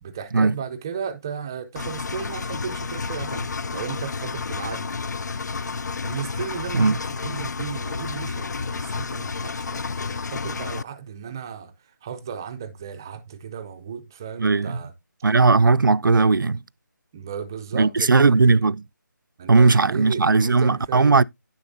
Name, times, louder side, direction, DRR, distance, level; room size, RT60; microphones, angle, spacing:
voice 1, 0.0-5.0 6.0-14.9 17.1-18.6 19.4-21.2, right 7 dB, 10° right, 0.4 m, -35 dB
Engine, 1.8-10.8, left 4 dB, 60° left, 0.4 m, -31 dB
voice 2, 14.4-14.8 15.2-16.6 17.7-18.8 19.5-21.2, right 3 dB, 85° right, 0.4 m, -17 dB
9.8 x 6.8 x 2.6 m
figure-of-eight pair, 165°, 11 cm